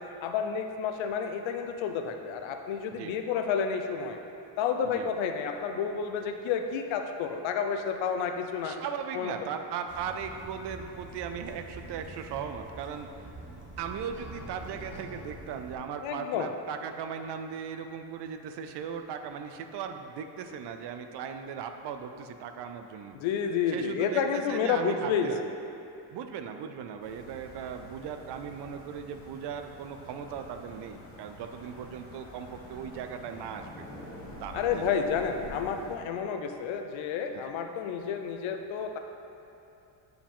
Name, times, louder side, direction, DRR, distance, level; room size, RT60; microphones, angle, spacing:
voice 1, 0.0-4.2 4.6-8.8 9.1-9.3 16.0-16.5 23.1-25.4 34.5-39.0, left 6 dB, 85° left, 5 dB, 0.7 m, -30 dB
voice 2, 8.6-13.1 13.8-23.2 23.7-25.3 26.1-33.7 34.4-35.0 37.3-37.5, right 7 dB, 65° right, 7 dB, 0.5 m, -38 dB
sound 1, 9.9-15.8, right 2 dB, 25° right, 0.6 m, -45 dB
sound 2, 27.0-36.0, left 1 dB, 20° left, 1.7 m, -47 dB
9.0 x 4.9 x 3.6 m, 2.8 s
cardioid pair, 175°, 45 cm